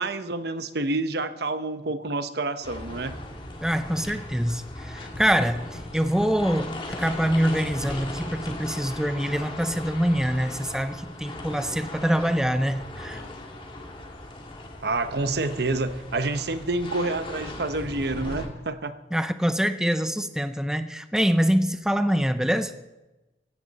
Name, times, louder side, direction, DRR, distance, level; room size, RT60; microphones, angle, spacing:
voice 1, 0.0-3.1 14.8-18.9, right 2 dB, 60° right, 11 dB, 0.9 m, -28 dB
sound 1, 2.6-18.5, left 1 dB, 30° left, 2.3 m, -38 dB
voice 2, 3.6-13.2 19.1-22.7, equal, 5° right, 10 dB, 0.5 m, -25 dB
16.5 x 16.0 x 4.1 m, 1.0 s
head